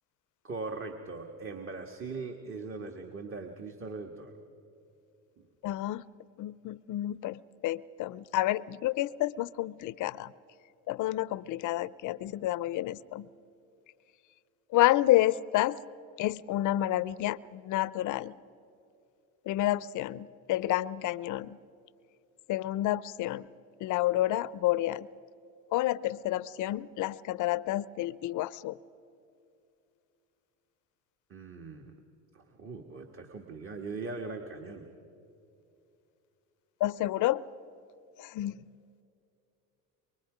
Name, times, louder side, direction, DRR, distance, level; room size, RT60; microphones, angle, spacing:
voice 1, 0.4-4.3 31.3-31.9 32.3-34.9, right 3 dB, 35° right, 3 dB, 1.7 m, -40 dB
voice 2, 5.6-6.0 6.4-10.3 10.9-13.3 14.7-15.8 16.2-18.3 19.5-21.6 22.5-23.5 23.8-25.1 25.7-28.8 36.8-37.4 38.2-38.6, left 15 dB, 50° left, 19 dB, 0.6 m, -29 dB
24.0 x 23.5 x 5.1 m, 2.6 s
supercardioid pair, 85°, 38 cm